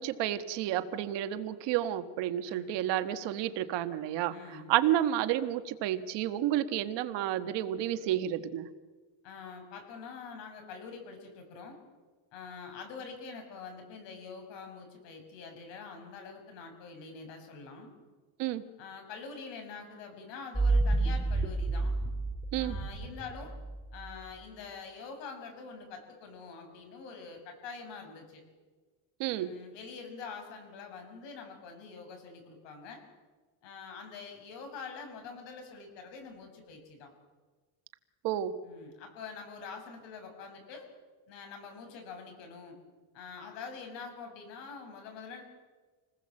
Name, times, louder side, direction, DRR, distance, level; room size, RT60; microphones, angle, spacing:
voice 1, 0.0-4.3 4.7-8.7 18.4-18.6 22.5-22.8 29.2-29.5 38.2-38.5, right 12 dB, 60° right, 10 dB, 1.5 m, -30 dB
voice 2, 2.5-2.9 4.3-4.8 9.2-11.8 12.3-17.9 18.8-21.9 22.6-23.5 23.9-28.4 29.4-33.0 33.6-37.1 38.6-40.9 41.3-42.8 43.1-45.4, left 5 dB, 65° left, 4 dB, 7.1 m, -45 dB
sound 1, 20.5-24.1, right 2 dB, 5° right, 3.2 m, -30 dB
27.5 x 20.0 x 7.7 m, 1.3 s
cardioid pair, 170°, 47 cm